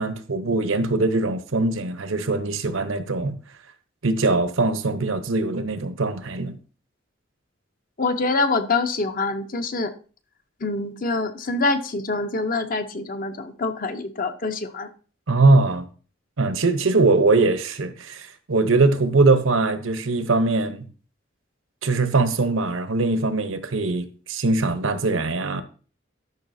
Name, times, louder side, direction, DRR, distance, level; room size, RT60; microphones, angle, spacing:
voice 1, 0.0-3.4 4.0-6.6 15.3-15.8 16.4-20.9 21.8-25.6, right 3 dB, 85° right, 0.9 m, -21 dB
voice 2, 8.0-9.9 10.6-14.9, left 3 dB, 45° left, 0.7 m, -25 dB
12.0 x 5.6 x 2.7 m
head